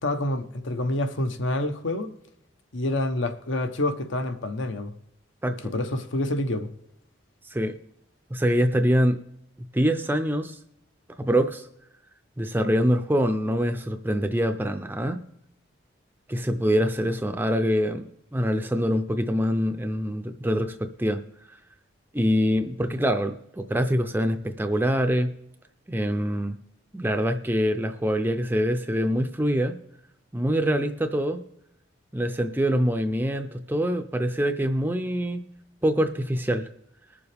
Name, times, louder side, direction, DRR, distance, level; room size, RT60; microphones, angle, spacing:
voice 1, 0.0-2.1 2.7-4.9 5.7-6.7, left 1 dB, 70° left, 0.9 m, -27 dB
voice 2, 8.3-9.2 9.7-10.6 11.2-11.7 12.4-15.2 16.3-21.2 22.1-25.3 25.9-26.6 26.9-29.8 30.3-31.4 32.1-35.4 35.8-36.7, equal, 10° right, 0.4 m, -24 dB
21.0 x 7.1 x 3.4 m
head